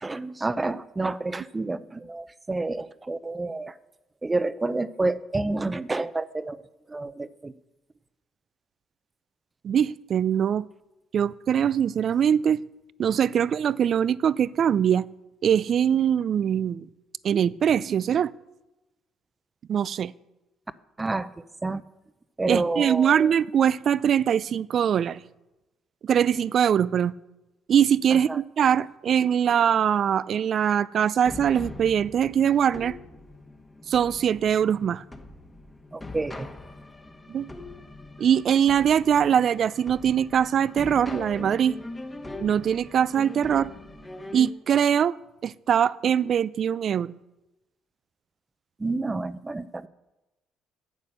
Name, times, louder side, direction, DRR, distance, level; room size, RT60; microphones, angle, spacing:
voice 1, 0.0-3.7 4.2-6.6 6.9-7.5 21.0-21.3 21.6-21.8 22.4-23.3 28.1-28.4 35.9-36.5 48.8-49.9, right 2 dB, 20° right, 0.7 m, -29 dB
voice 2, 9.6-10.7 11.1-12.6 13.0-15.1 15.4-16.9 17.2-18.3 19.7-20.1 22.5-25.2 26.0-27.1 27.7-32.9 33.9-35.0 37.3-37.5 38.2-41.8 42.4-43.7 44.3-45.2 45.4-47.2, right 8 dB, 55° right, 0.4 m, -22 dB
sound 1, 31.3-44.5, left 2 dB, 20° left, 1.4 m, -42 dB
9.7 x 8.2 x 6.6 m
supercardioid pair, 60°, 0 cm